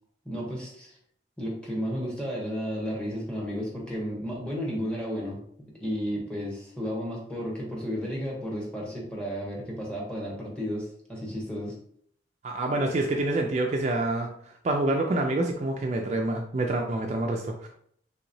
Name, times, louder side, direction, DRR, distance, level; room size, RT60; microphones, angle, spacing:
voice 1, 0.2-1.0 1.4-5.4 5.8-11.7, equal, 5° left, -3 dB, 0.9 m, -33 dB
voice 2, 12.4-14.3 14.6-17.7, right 2 dB, 40° right, 2 dB, 0.3 m, -27 dB
3.4 x 2.9 x 2.6 m, 0.65 s
head